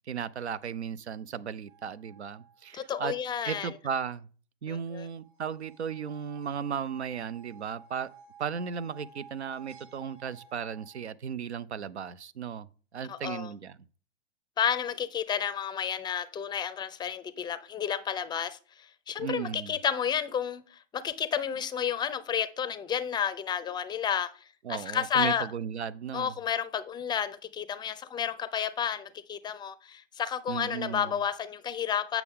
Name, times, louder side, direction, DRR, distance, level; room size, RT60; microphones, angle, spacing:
voice 1, 0.1-3.1 3.4-4.3 4.6-8.1 8.4-12.7 12.9-13.8 19.2-19.8 24.6-26.3 30.5-31.1, right 7 dB, 90° right, 0.6 m, -35 dB
sound 1, 1.7-2.7 5.2-11.0, right 5 dB, 55° right, 3.7 m, -54 dB
voice 2, 2.7-3.7 4.9-5.1 13.1-13.5 14.6-25.5 26.1-32.2, left 8 dB, 15° left, 0.4 m, -31 dB
8.2 x 5.9 x 3.6 m
hypercardioid pair, 110°, 32 cm